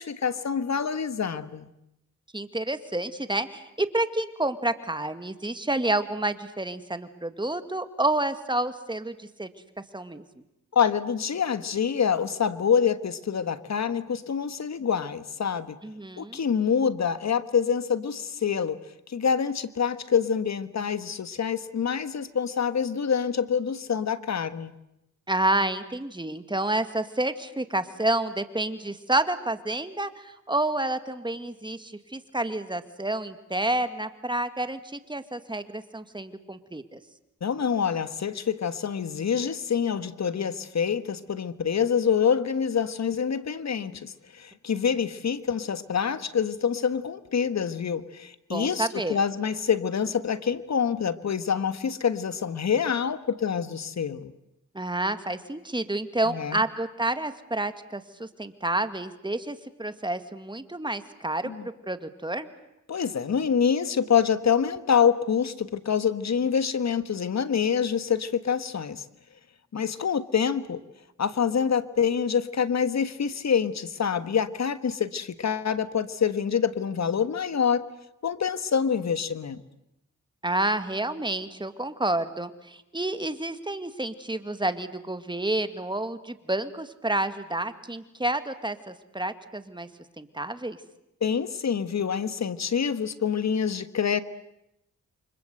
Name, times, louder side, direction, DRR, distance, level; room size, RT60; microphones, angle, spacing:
voice 1, 0.0-1.7 10.7-15.8 16.2-18.8 19.1-24.7 37.4-54.3 56.3-56.6 61.4-61.6 62.9-69.0 69.7-70.8 71.2-77.8 78.2-79.6 91.2-94.2, left 7 dB, 60° left, 13 dB, 1.5 m, -26 dB
voice 2, 2.3-9.5 9.8-10.2 15.8-16.4 25.3-37.0 48.5-49.2 54.7-62.5 80.4-89.9 90.2-90.8, right 2 dB, 15° right, 10 dB, 2.1 m, -29 dB
29.0 x 25.0 x 7.9 m, 0.84 s
cardioid pair, 70°, 30 cm